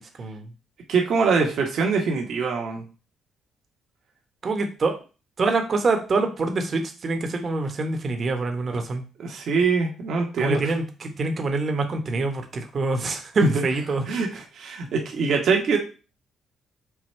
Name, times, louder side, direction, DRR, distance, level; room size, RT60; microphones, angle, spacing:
voice 1, 0.2-0.5 4.4-4.9 5.4-9.0 10.4-14.0, right 3 dB, 45° right, 5 dB, 0.9 m, -25 dB
voice 2, 0.9-2.8 9.2-10.7 13.4-13.6 14.1-15.8, right 4 dB, 70° right, 1 dB, 1.1 m, -23 dB
4.7 x 2.3 x 4.4 m, 0.34 s
cardioid pair, 90°, 0 cm